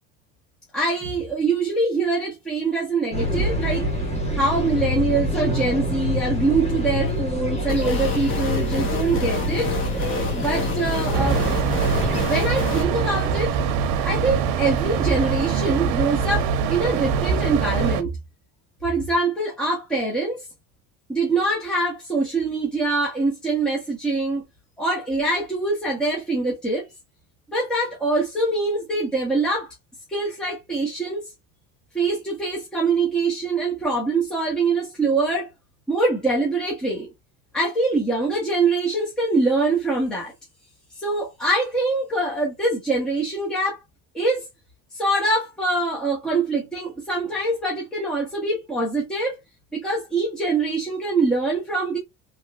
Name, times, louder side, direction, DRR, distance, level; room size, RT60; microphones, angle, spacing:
voice 1, 0.7-3.9 4.3-9.7 10.3-11.4 12.2-13.5 14.0-18.1 18.8-20.4 21.1-24.4 24.8-26.8 27.5-29.7 30.1-31.2 31.9-35.5 35.9-37.1 37.5-40.3 41.0-43.8 44.1-44.5 44.9-49.4 49.7-52.0, right 3 dB, ahead, 0.7 m, -24 dB
sound 1, 3.1-12.3, equal, 15° left, 1.1 m, -25 dB
sound 2, 7.7-12.8, left 4 dB, 35° left, 0.7 m, -29 dB
sound 3, 11.1-18.0, right 6 dB, 85° right, 0.7 m, -23 dB
3.1 x 2.8 x 2.2 m
cardioid pair, 160°, 36 cm